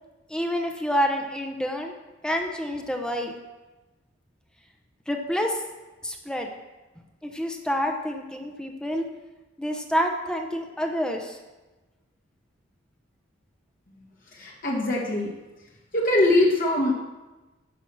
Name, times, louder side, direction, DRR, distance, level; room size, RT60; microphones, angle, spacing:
voice 1, 0.3-1.9 2.2-3.4 5.1-5.6 6.0-6.5 7.2-9.1 9.6-11.4, equal, 5° left, 3 dB, 0.8 m, -28 dB
voice 2, 14.3-15.3 15.9-16.9, left 1 dB, 45° left, -2 dB, 1.5 m, -22 dB
10.0 x 6.0 x 6.1 m, 1.1 s
head